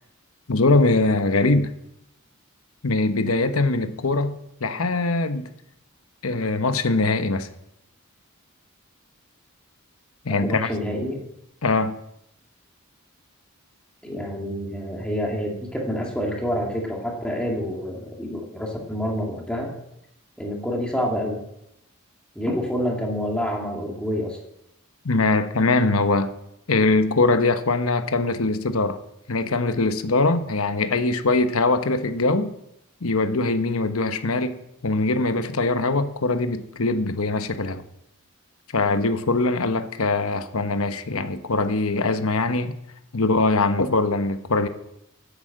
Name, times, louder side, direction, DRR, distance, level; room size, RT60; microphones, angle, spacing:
voice 1, 0.5-1.7 2.8-4.3 4.6-5.5 6.2-7.5 10.2-10.7 11.6-11.9 25.0-26.3 26.7-29.0 29.3-32.5 33.0-37.8 38.7-42.7 43.1-44.7, left 3 dB, 80° left, 1.0 m, -22 dB
voice 2, 10.3-11.2 14.0-19.7 20.4-21.4 22.4-24.4, equal, 5° left, 2.0 m, -27 dB
10.5 x 8.2 x 7.6 m
head